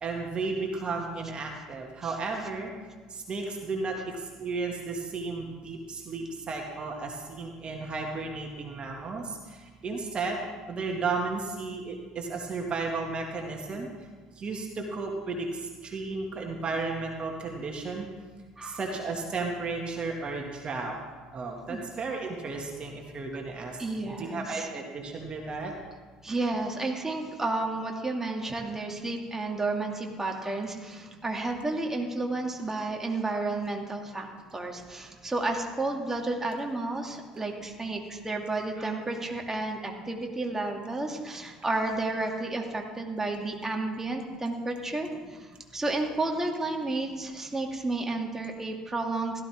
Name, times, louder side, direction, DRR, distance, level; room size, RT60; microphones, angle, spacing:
voice 1, 0.0-2.7 3.1-9.4 9.8-10.4 10.7-13.9 14.4-18.1 18.6-21.0 21.3-25.7, right 3 dB, 35° right, 1 dB, 2.0 m, -34 dB
voice 2, 23.8-24.7 26.2-49.4, right 2 dB, 15° right, 1 dB, 2.3 m, -32 dB
16.5 x 12.5 x 3.6 m, 1.4 s
hypercardioid pair, 65°, 3 cm